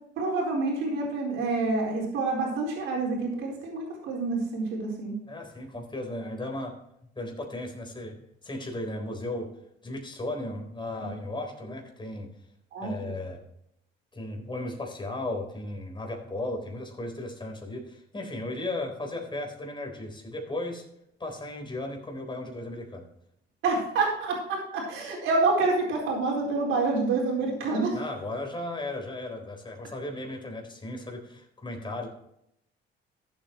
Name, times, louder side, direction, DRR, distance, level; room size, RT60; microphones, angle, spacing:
voice 1, 0.2-5.1 12.7-13.1 23.6-28.0, right 3 dB, 90° right, -1 dB, 4.3 m, -27 dB
voice 2, 5.3-6.8 7.2-8.2 8.4-9.5 9.8-12.3 12.8-13.4 14.1-20.8 21.2-23.1 27.9-32.1, left 2 dB, 25° left, 2 dB, 3.9 m, -35 dB
14.0 x 8.3 x 3.1 m, 0.77 s
cardioid pair, 90°, 20 cm